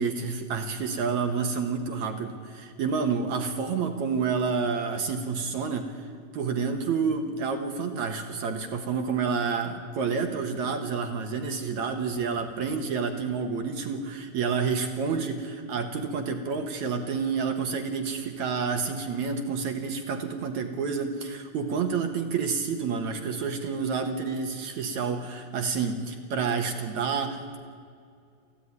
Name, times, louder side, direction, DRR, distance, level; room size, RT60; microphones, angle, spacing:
voice 1, 0.0-5.9 6.3-27.6, right 5 dB, 60° right, 5 dB, 2.0 m, -29 dB
27.0 x 15.0 x 9.6 m, 2.3 s
omnidirectional pair, 4.9 m